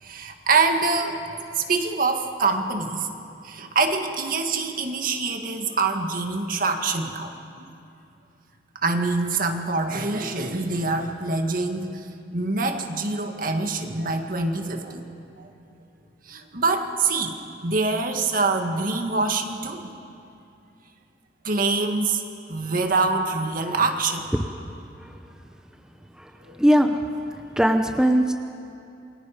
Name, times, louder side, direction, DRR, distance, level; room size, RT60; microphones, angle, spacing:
voice 1, 0.0-3.1 3.4-7.3 7.6-7.7 8.8-15.1 15.4-15.5 16.3-17.3 17.6-19.9 21.4-22.2 22.5-24.3 26.4-26.6, right 3 dB, 55° right, 4 dB, 1.9 m, -25 dB
voice 2, 26.6-27.0 27.6-28.3, equal, 5° right, 5 dB, 0.8 m, -19 dB
28.5 x 23.0 x 5.2 m, 2.7 s
head